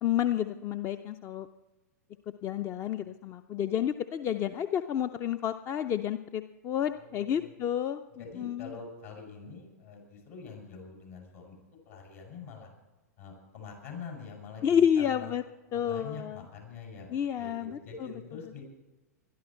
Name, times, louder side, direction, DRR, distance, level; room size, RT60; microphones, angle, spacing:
voice 1, 0.0-1.5 2.4-8.0 8.4-8.7 14.6-15.4 15.7-16.4 17.1-18.1, left 9 dB, 30° left, 11 dB, 0.6 m, -30 dB
voice 2, 6.9-7.6 8.2-12.7 13.2-15.3 15.7-18.6, left 5 dB, 60° left, 1 dB, 7.0 m, -45 dB
21.5 x 12.5 x 4.5 m, 1.1 s
figure-of-eight pair, 100°, 9 cm